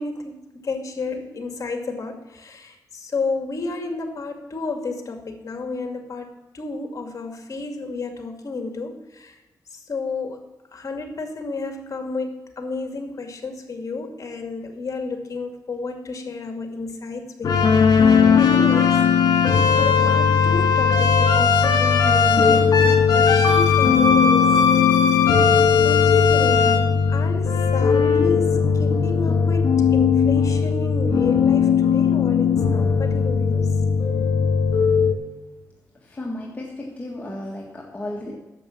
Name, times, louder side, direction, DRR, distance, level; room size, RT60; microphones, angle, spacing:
voice 1, 0.0-9.3 9.7-17.8 18.0-19.0 19.8-24.6 25.8-33.7, left 3 dB, 50° left, 4 dB, 2.3 m, -31 dB
sound 1, 17.4-35.1, left 6 dB, 75° left, 1.9 m, -17 dB
voice 2, 36.0-38.4, left 1 dB, 20° left, -2 dB, 1.7 m, -33 dB
10.5 x 7.2 x 7.2 m, 1.1 s
cardioid pair, 95°, 7 cm